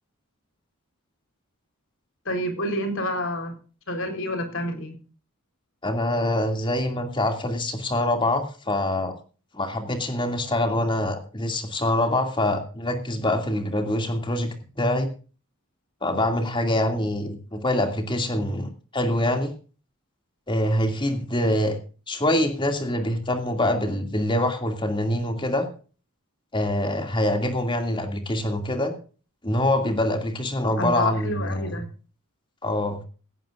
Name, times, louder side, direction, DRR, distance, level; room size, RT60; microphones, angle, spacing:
voice 1, 2.3-3.5 3.9-4.9 30.8-31.9, left 1 dB, 65° left, 5 dB, 4.1 m, -28 dB
voice 2, 5.8-9.1 9.6-15.1 16.0-19.5 20.5-21.8 22.1-25.7 26.5-28.9 29.4-31.7 32.6-33.0, left 1 dB, 20° left, 5 dB, 2.5 m, -25 dB
17.0 x 16.0 x 2.5 m, 0.38 s
head